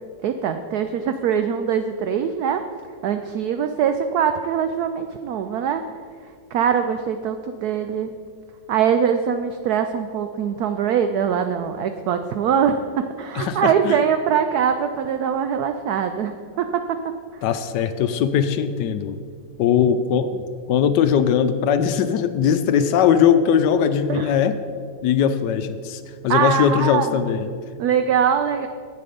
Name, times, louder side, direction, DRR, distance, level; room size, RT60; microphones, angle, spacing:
voice 1, 0.2-2.6 3.0-5.8 6.5-8.1 8.7-12.8 13.2-16.8 17.3-17.4 24.1-24.3 26.3-27.1 27.8-28.7, right 8 dB, 75° right, 8 dB, 0.8 m, -22 dB
voice 2, 13.4-14.0 17.4-19.2 19.6-20.4 20.7-24.6 25.0-27.5, left 8 dB, 75° left, 10 dB, 1.1 m, -20 dB
11.0 x 8.4 x 5.1 m, 2.1 s
omnidirectional pair, 2.1 m